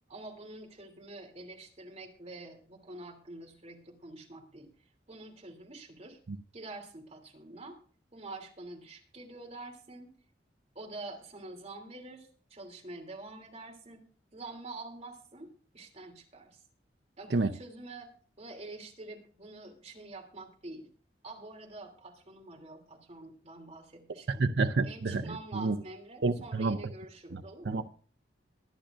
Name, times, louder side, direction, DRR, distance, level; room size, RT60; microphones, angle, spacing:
voice 1, 0.1-4.7 5.1-6.2 6.5-7.8 8.1-10.1 10.7-14.0 14.3-15.5 15.7-16.6 17.2-18.1 18.4-20.9 21.2-24.5 24.8-27.9, right 2 dB, 40° right, 2.9 m, -46 dB
voice 2, 24.4-25.8 26.2-26.8 27.3-27.4 27.7-27.9, right 3 dB, 75° right, 0.6 m, -29 dB
22.5 x 10.0 x 2.5 m
head